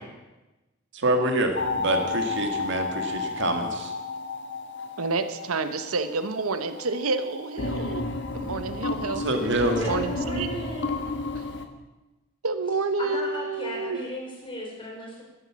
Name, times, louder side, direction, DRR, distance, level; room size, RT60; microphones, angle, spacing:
voice 1, 0.9-3.9 9.1-9.8, right 1 dB, 60° right, 4 dB, 1.9 m, -26 dB
sound 1, 1.6-11.7, left 3 dB, 55° left, 1.4 m, -32 dB
voice 2, 5.0-8.0 8.3-9.2 9.8-10.5 11.3-11.4 12.4-14.0, right 3 dB, 90° right, 10 dB, 1.0 m, -29 dB
voice 3, 9.8-10.9 13.0-15.2, left 1 dB, 25° left, 0 dB, 4.0 m, -36 dB
12.0 x 11.0 x 7.5 m, 1.1 s
head